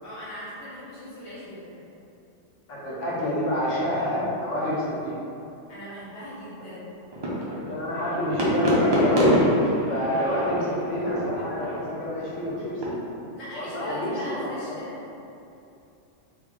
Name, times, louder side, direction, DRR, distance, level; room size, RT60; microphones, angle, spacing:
voice 1, 0.0-1.8 5.7-7.0 13.3-15.0, equal, 65° left, -9 dB, 1.4 m, -39 dB
voice 2, 2.7-5.2 7.7-9.3 9.9-13.0 13.5-14.4 14.7-14.8, left 1 dB, 85° left, -6 dB, 1.2 m, -28 dB
sound 1, 7.1-12.8, equal, 35° right, 0.4 m, -26 dB
3.4 x 2.3 x 3.5 m, 2.8 s
omnidirectional pair, 1.2 m